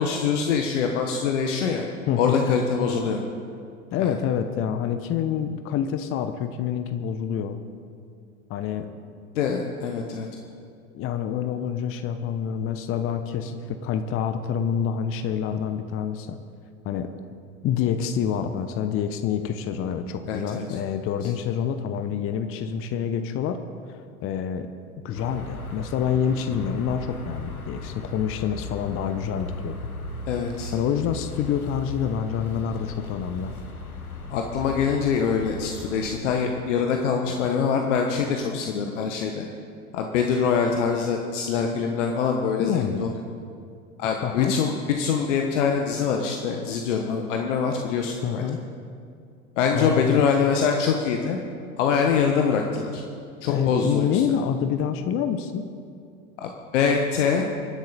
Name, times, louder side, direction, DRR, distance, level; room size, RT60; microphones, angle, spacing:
voice 1, 0.0-1.8 2.2-3.2 4.0-4.1 9.3-10.3 20.3-20.6 30.3-30.7 34.3-39.4 39.9-43.1 44.0-48.4 49.6-51.4 51.8-53.0 53.4-54.2 56.4-57.4, left 6 dB, 55° left, 3 dB, 1.3 m, -24 dB
voice 2, 2.1-2.4 3.9-7.6 8.5-8.9 10.9-16.4 16.8-17.1 17.6-23.6 23.9-24.7 25.0-29.7 30.7-33.5 42.6-43.1 44.2-44.6 48.2-48.6 49.7-50.2 53.5-55.7, left 8 dB, 30° left, 9 dB, 0.9 m, -27 dB
sound 1, 25.1-36.2, left 2 dB, 85° left, 1.4 m, -37 dB
26.0 x 10.5 x 4.2 m, 2.4 s
figure-of-eight pair, 80°, 42 cm